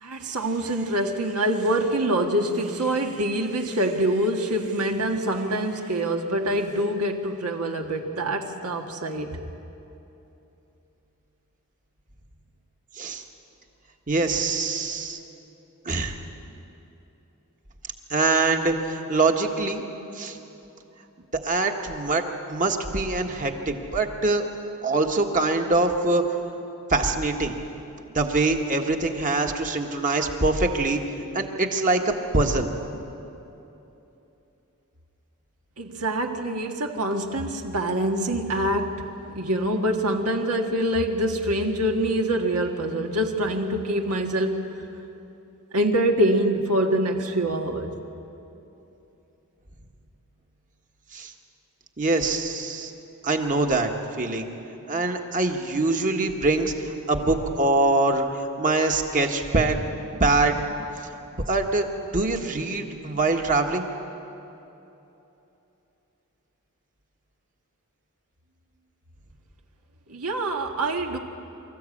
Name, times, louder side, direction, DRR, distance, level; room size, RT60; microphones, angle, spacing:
voice 1, 0.0-9.4 35.8-39.0 39.3-44.7 45.7-47.9 70.1-71.2, right 1 dB, 80° right, 2 dB, 1.6 m, -25 dB
voice 2, 14.1-15.2 15.8-16.2 18.1-19.8 20.1-20.4 21.4-24.5 24.8-26.2 26.9-27.5 28.1-31.0 31.3-32.7 51.1-51.3 52.0-52.9 53.2-53.9 54.2-54.5 54.9-59.8 60.2-60.6 61.5-61.9 62.1-63.9, right 3 dB, 35° right, 3 dB, 1.5 m, -24 dB
25.0 x 14.5 x 8.6 m, 3.0 s
head